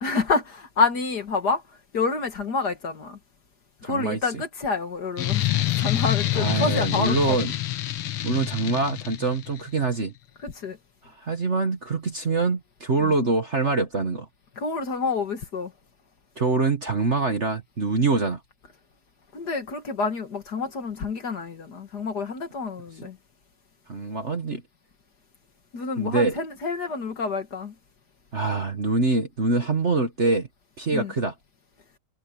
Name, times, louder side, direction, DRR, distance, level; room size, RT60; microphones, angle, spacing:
voice 1, 0.0-1.6 1.9-3.2 3.8-7.4 10.4-10.8 13.0-13.1 14.6-15.7 19.3-23.2 25.7-27.7 30.9-31.1, left 4 dB, 50° left, 2.2 m, -28 dB
voice 2, 3.8-4.4 6.3-7.5 8.2-10.1 11.2-14.3 16.4-18.4 23.9-24.6 26.0-26.4 28.3-30.5 30.8-31.3, right 3 dB, 35° right, 1.6 m, -24 dB
sound 1, 5.2-9.6, left 15 dB, 90° left, 2.0 m, -26 dB
omnidirectional pair, 2.4 m